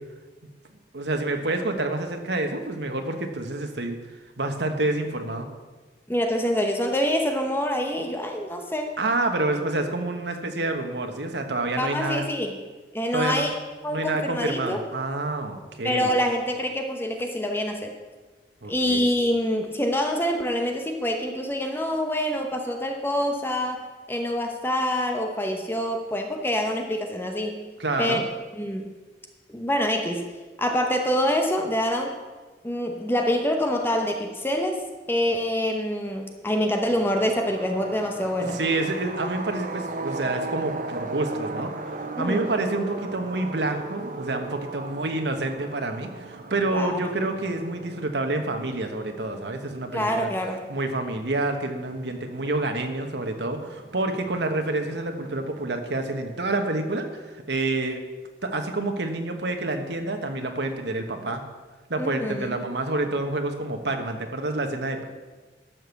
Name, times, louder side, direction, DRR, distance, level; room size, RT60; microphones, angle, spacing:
voice 1, 0.9-4.0 4.4-5.5 9.0-12.2 13.1-13.5 13.9-16.1 18.6-19.0 27.8-28.2 38.2-41.7 42.2-50.3 50.7-58.0 58.4-61.4 61.9-65.0, right 2 dB, 75° right, 5 dB, 1.3 m, -28 dB
voice 2, 6.1-8.9 11.8-12.5 12.9-13.5 13.8-14.8 15.8-17.9 18.7-23.8 24.1-27.6 28.0-28.2 28.6-28.8 29.5-30.2 30.6-32.1 32.6-34.8 35.1-38.6 42.2-42.4 46.7-47.0 49.9-50.6 62.0-62.6, equal, 10° left, 3 dB, 0.9 m, -26 dB
sound 1, 36.9-55.7, right 2 dB, 50° right, 0.8 m, -38 dB
12.5 x 6.3 x 7.0 m, 1.3 s
head